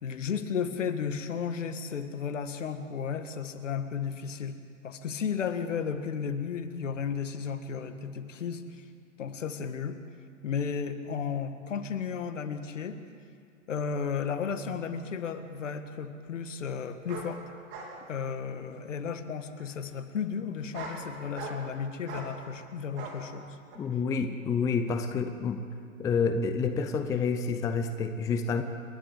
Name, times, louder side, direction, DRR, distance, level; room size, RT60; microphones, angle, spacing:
voice 1, 0.0-4.6 4.8-8.8 9.2-10.0 10.4-13.0 13.7-17.4 18.1-23.6, left 6 dB, 65° left, 9 dB, 1.8 m, -34 dB
sound 1, 15.0-15.1 17.1-17.3 17.7-17.9 18.3-18.8 19.6-19.7 20.5-21.0 21.3-21.7 22.1-22.3 23.0-23.2 23.7-23.8, right 4 dB, 30° right, 3.7 m, -41 dB
voice 2, 23.8-25.6 26.0-28.6, left 5 dB, 10° left, 8 dB, 0.5 m, -28 dB
29.0 x 11.5 x 8.1 m, 2.3 s
figure-of-eight pair, 115°, 41 cm